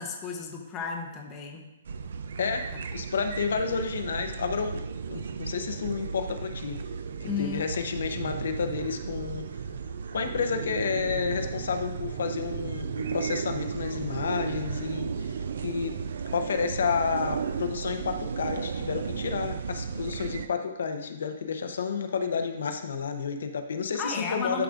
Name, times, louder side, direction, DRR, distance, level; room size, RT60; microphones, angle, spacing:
voice 1, 0.0-1.6 7.3-7.7 24.0-24.6, left 5 dB, 15° left, 1 dB, 0.7 m, -33 dB
sound 1, 1.8-20.5, right 6 dB, 60° right, 0.4 m, -34 dB
voice 2, 2.4-6.8 7.4-9.5 10.1-16.0 16.3-24.6, left 5 dB, 70° left, 6 dB, 0.7 m, -31 dB
11.5 x 4.9 x 2.5 m, 0.95 s
hypercardioid pair, 175°, 0 cm